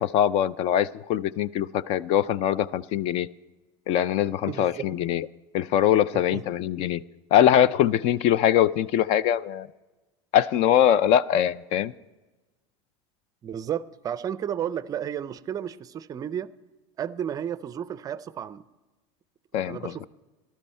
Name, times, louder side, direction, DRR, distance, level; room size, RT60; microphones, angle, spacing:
voice 1, 0.0-3.3 3.9-5.3 5.5-7.0 7.3-9.7 10.3-11.9 19.5-19.9, left 10 dB, 50° left, 20 dB, 0.4 m, -22 dB
voice 2, 4.5-4.8 6.1-6.4 13.4-16.5 17.0-18.6 19.6-20.1, right 9 dB, 25° right, 16 dB, 0.4 m, -32 dB
13.5 x 12.0 x 4.3 m, 1.2 s
supercardioid pair, 135°, 13 cm